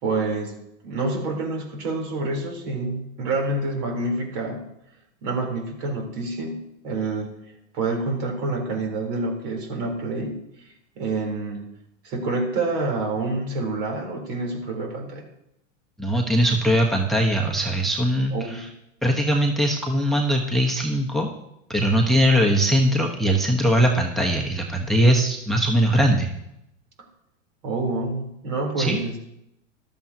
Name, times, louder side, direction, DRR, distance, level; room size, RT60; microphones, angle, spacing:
voice 1, 0.0-4.7 5.2-7.3 7.7-10.4 11.0-11.7 12.0-15.2 18.3-18.7 27.6-29.2, right 2 dB, 55° right, 2 dB, 3.7 m, -27 dB
voice 2, 16.0-18.7 19.0-21.3 21.7-26.3 28.8-29.0, equal, ahead, 1 dB, 1.1 m, -21 dB
14.0 x 12.5 x 2.9 m, 0.80 s
hypercardioid pair, 110°, 39 cm